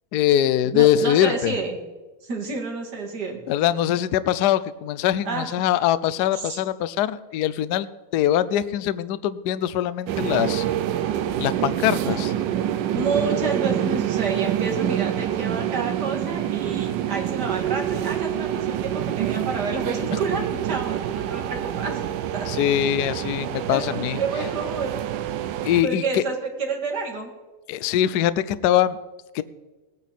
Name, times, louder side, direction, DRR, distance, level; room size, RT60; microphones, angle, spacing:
voice 1, 0.1-1.5 3.5-10.6 11.4-12.3 22.5-24.2 25.6-26.2 27.7-29.0 29.3-29.4, left 11 dB, 85° left, 15 dB, 0.9 m, -22 dB
voice 2, 0.6-1.8 2.2-3.4 5.2-5.5 6.3-6.6 12.0-12.3 12.9-22.0 22.3-22.5 23.7-24.9 25.8-27.3, right 4 dB, 50° right, 1 dB, 2.6 m, -29 dB
sound 1, 10.1-25.8, right 11 dB, 70° right, 1.1 m, -26 dB
19.5 x 9.2 x 4.2 m, 1.2 s
omnidirectional pair, 2.4 m